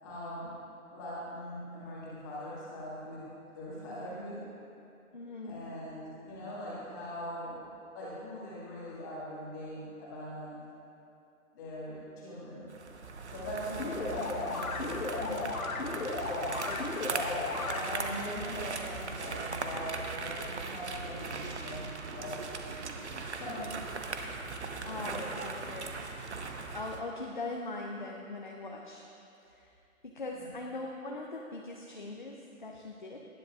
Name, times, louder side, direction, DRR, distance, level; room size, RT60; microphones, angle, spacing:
voice 1, 0.0-0.5 0.9-3.3 3.5-4.4 5.4-7.6 7.9-10.6 11.5-12.7 13.3-15.4 16.2-16.6 17.0-17.2 17.6-23.8 24.7-25.2 30.3-30.5, equal, 15° left, -8 dB, 1.8 m, -41 dB
voice 2, 5.1-5.6 13.7-14.6 16.7-16.8 24.6-25.8 26.1-26.2 26.7-29.0 29.5-29.7 30.0-33.2, left 2 dB, 35° left, 0 dB, 0.6 m, -41 dB
sound 1, 12.7-27.0, right 4 dB, 50° right, 0.9 m, -39 dB
sound 2, 13.8-18.2, left 3 dB, 75° left, 1.4 m, -35 dB
19.5 x 10.0 x 2.4 m, 2.7 s
figure-of-eight pair, 165°, 43 cm